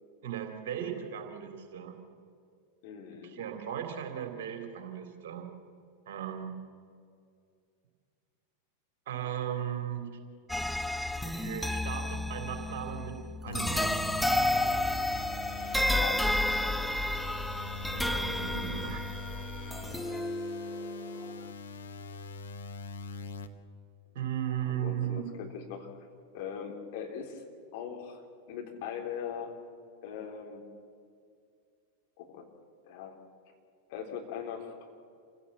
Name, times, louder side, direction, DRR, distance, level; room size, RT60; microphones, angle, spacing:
voice 1, 0.2-2.0 3.2-5.5 6.1-6.6 9.1-10.1 11.2-13.2 13.4-14.0 17.9-19.0 24.1-25.2, right 10 dB, 50° right, 5 dB, 3.4 m, -36 dB
voice 2, 2.8-3.4 16.0-16.3 24.7-25.9 26.3-27.4 27.7-28.2 28.5-29.6 30.0-30.7 32.2-32.5 32.8-33.1 33.9-34.9, left 7 dB, 50° left, 1 dB, 3.7 m, -40 dB
sound 1, 10.5-21.5, left 1 dB, ahead, 0.5 m, -31 dB
sound 2, 13.5-23.5, left 4 dB, 65° left, 1.2 m, -42 dB
27.5 x 17.0 x 7.3 m, 2.3 s
figure-of-eight pair, 90°, 0 cm